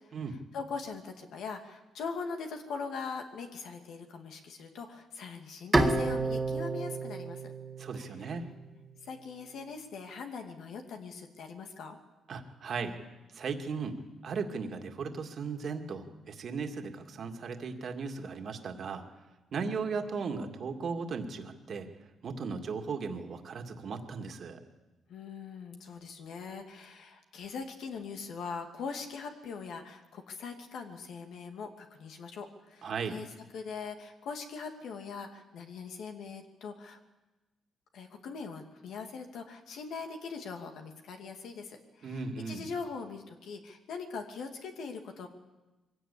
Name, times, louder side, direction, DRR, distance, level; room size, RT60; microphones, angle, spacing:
voice 1, 0.1-7.5 7.9-8.3 9.0-12.0 25.1-37.0 37.9-45.3, left 5 dB, 75° left, 4 dB, 2.4 m, -41 dB
Bowed string instrument, 5.7-9.0, right 2 dB, 15° right, 2.1 m, -30 dB
voice 2, 7.8-8.4 12.3-13.0 13.3-19.0 19.5-21.9 22.2-24.6 32.8-33.2 42.0-42.7, right 5 dB, 55° right, 5 dB, 2.2 m, -37 dB
22.5 x 16.5 x 8.5 m, 1.1 s
cardioid pair, 90°, 0 cm